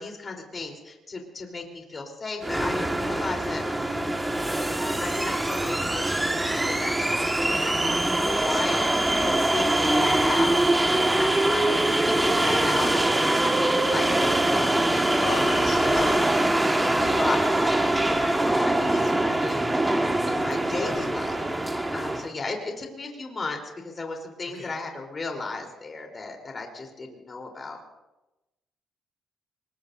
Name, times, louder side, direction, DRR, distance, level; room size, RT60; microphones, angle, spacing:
voice 1, 0.0-3.6 4.8-15.5 15.9-16.5 17.0-27.8, left 3 dB, 35° left, 2 dB, 3.6 m, -35 dB
sound 1, 2.4-22.3, right 1 dB, 15° right, 1.6 m, -23 dB
voice 2, 15.2-16.1 24.5-24.7, left 5 dB, 65° left, 1 dB, 3.0 m, -34 dB
24.5 x 21.0 x 2.6 m, 1.0 s
cardioid pair, 90°, 0 cm